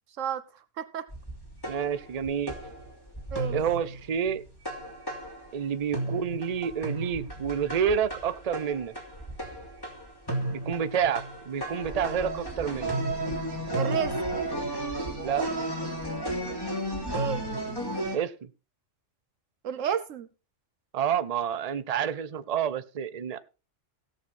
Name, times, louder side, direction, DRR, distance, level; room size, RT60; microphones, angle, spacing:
voice 1, 0.8-1.1 3.3-3.6 13.7-14.2 17.1-17.4 19.6-20.3, right 8 dB, 80° right, 1.2 m, -31 dB
sound 1, 1.1-5.7 5.9-18.2, right 1 dB, 20° left, 3.2 m, -34 dB
voice 2, 1.7-2.6 3.5-4.4 5.5-8.9 10.5-13.0 15.2-15.5 18.1-18.5 20.9-23.4, right 8 dB, 40° right, 0.7 m, -29 dB
16.5 x 6.9 x 4.2 m
omnidirectional pair, 1.3 m